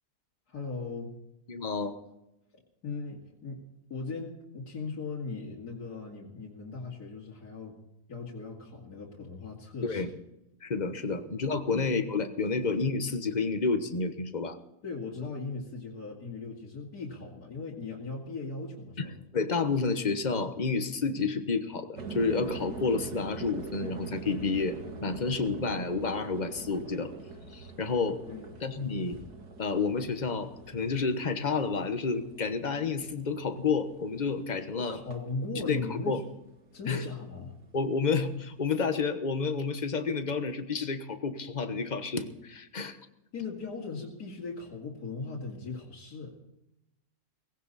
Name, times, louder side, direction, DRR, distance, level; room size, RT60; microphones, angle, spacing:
voice 1, 0.5-1.1 2.8-3.6 3.9-7.8 8.1-10.0 11.1-11.3 11.7-11.8 12.6-12.7 14.8-19.2 28.3-28.5 34.8-36.2 36.7-37.5 43.3-46.3, left 4 dB, 75° left, -4 dB, 3.0 m, -38 dB
voice 2, 1.5-1.9 9.8-10.1 10.6-14.6 19.0-19.1 19.3-27.1 27.5-28.2 28.6-29.2 29.6-35.0 35.7-36.2 36.9-37.0 37.7-43.0, left 4 dB, 30° left, 8 dB, 1.2 m, -30 dB
sound 1, 22.0-36.5 36.8-37.4, right 4 dB, 85° right, 2.3 m, -44 dB
19.0 x 16.5 x 4.2 m, 0.89 s
omnidirectional pair, 1.6 m